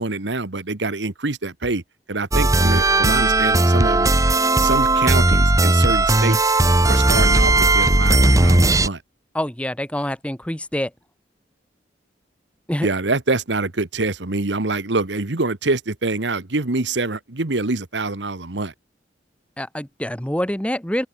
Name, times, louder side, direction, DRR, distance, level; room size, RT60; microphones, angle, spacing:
voice 1, 0.0-1.8 2.1-4.1 4.6-6.4 6.8-9.0 12.8-18.7, right 3 dB, 85° right, 1.5 m, -25 dB
sound 1, 2.3-8.9, right 2 dB, 20° right, 1.1 m, -16 dB
voice 2, 9.3-10.9 12.7-12.9 19.6-21.1, left 1 dB, 5° left, 1.5 m, -26 dB
head